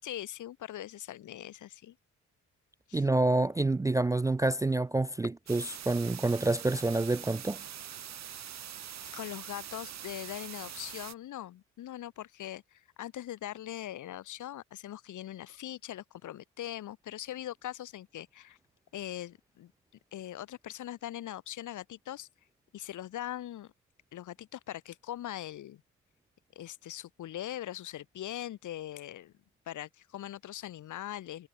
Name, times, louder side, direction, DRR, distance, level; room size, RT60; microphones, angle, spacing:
voice 1, 0.0-1.9 2.9-3.0 9.1-18.6 18.9-19.7 20.1-22.3 22.7-23.7 24.1-25.8 26.5-29.3 29.7-31.5, left 12 dB, 75° left, 6.3 m, -41 dB
voice 2, 2.9-7.6, right 2 dB, 10° right, 0.4 m, -28 dB
sound 1, 5.5-11.1, right 9 dB, 60° right, 5.4 m, -44 dB
cardioid pair, 90°, 30 cm